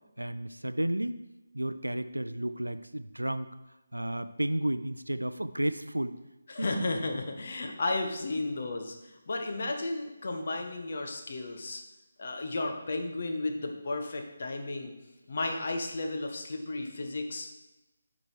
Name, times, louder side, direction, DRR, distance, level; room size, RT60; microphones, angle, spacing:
voice 1, 0.2-1.2 1.5-3.5 3.9-6.1 6.6-6.9, right 1 dB, 85° right, 12 dB, 0.4 m, -32 dB
voice 2, 6.5-11.8 12.2-14.9 15.3-17.5, left 2 dB, 50° left, 3 dB, 1.1 m, -33 dB
7.8 x 4.0 x 4.8 m, 1.0 s
figure-of-eight pair, 150°, 0 cm